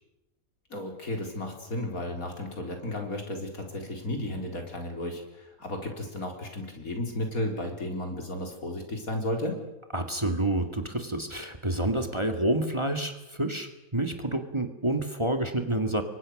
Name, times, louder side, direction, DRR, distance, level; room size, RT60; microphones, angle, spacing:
voice 1, 0.7-9.6, left 1 dB, 80° left, 3 dB, 4.6 m, -33 dB
voice 2, 9.9-16.0, right 1 dB, 20° right, 6 dB, 1.9 m, -28 dB
29.5 x 23.5 x 6.5 m, 0.97 s
omnidirectional pair, 1.5 m